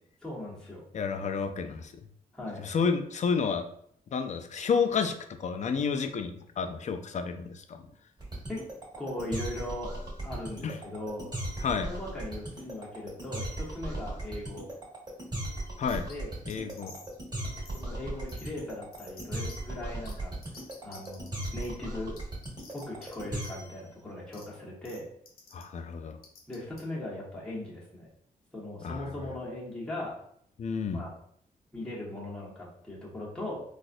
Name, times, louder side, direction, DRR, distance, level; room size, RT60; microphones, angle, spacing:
voice 1, 0.2-0.8 2.3-2.6 8.5-8.6 9.0-9.9 10.2-11.3 11.9-14.7 16.1-16.3 17.7-20.3 20.8-22.2 22.7-25.1 26.5-28.1 28.5-30.2 30.9-31.1 31.7-33.6, left 1 dB, 5° left, -6 dB, 1.2 m, -39 dB
voice 2, 0.9-1.9 2.6-3.6 4.1-5.1 5.4-7.9 10.6-10.8 11.6-11.9 15.8-16.0 16.5-16.9 25.5-26.2 28.8-29.1 30.6-31.1, left 5 dB, 50° left, 7 dB, 0.4 m, -30 dB
sound 1, 8.2-23.8, right 1 dB, 25° right, 1.5 m, -37 dB
sound 2, 15.9-16.1 16.5-17.1 17.6-17.8 18.3-18.5 18.9-19.5 20.0-20.1 20.4-21.7 22.2-23.1 23.4-23.5 24.3-24.4 24.8-25.0 25.3-25.6 26.2-26.8, left 4 dB, 90° left, 0.9 m, -50 dB
4.0 x 2.4 x 2.5 m, 0.66 s
cardioid pair, 100°, 15 cm